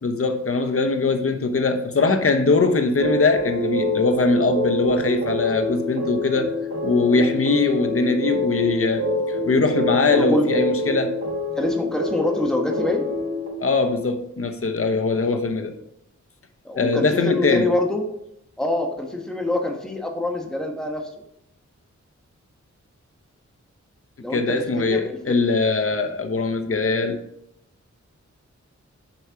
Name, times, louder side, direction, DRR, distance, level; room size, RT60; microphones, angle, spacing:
voice 1, 0.0-6.5 6.8-11.2 13.6-15.7 16.7-17.7 24.3-27.2, left 3 dB, 50° left, 6 dB, 1.0 m, -21 dB
sound 1, 3.0-13.5, left 1 dB, 55° right, 3.5 m, -26 dB
voice 2, 10.1-10.5 11.5-13.1 15.1-15.3 16.6-18.0 18.6-21.1 24.2-24.5 24.9-25.4, left 2 dB, ahead, 2 dB, 1.3 m, -25 dB
7.2 x 4.6 x 5.7 m, 0.77 s
wide cardioid pair, 80°, 29 cm